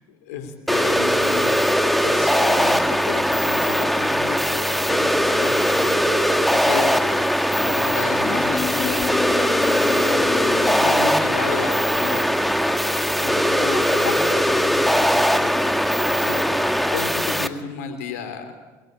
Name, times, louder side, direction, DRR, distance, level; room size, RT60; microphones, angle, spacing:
voice 1, 0.2-1.5 2.0-6.1 6.5-9.5 9.8-12.2 13.2-15.8 16.1-18.6, left 6 dB, 85° left, 8 dB, 3.5 m, -33 dB
sound 1, 0.7-17.5, equal, ahead, 1.9 m, -20 dB
sound 2, 8.2-11.1, left 7 dB, 40° left, 0.7 m, -30 dB
23.0 x 22.0 x 8.8 m, 1.2 s
hypercardioid pair, 70°, 9 cm